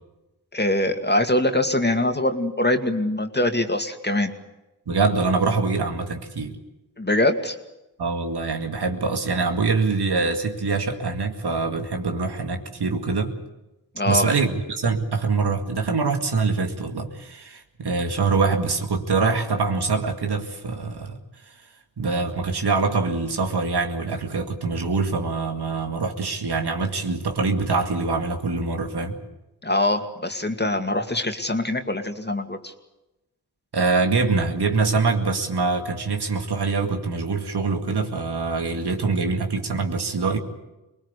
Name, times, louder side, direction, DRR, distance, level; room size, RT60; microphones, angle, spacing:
voice 1, 0.5-4.3 7.0-7.6 14.0-14.3 29.6-32.7, left 1 dB, 25° left, 6 dB, 2.3 m, -23 dB
voice 2, 4.9-6.6 8.0-13.3 14.0-21.2 22.0-29.2 33.7-40.4, right 4 dB, 80° right, 4 dB, 2.3 m, -24 dB
23.0 x 20.0 x 8.4 m, 0.97 s
cardioid pair, 45°, 39 cm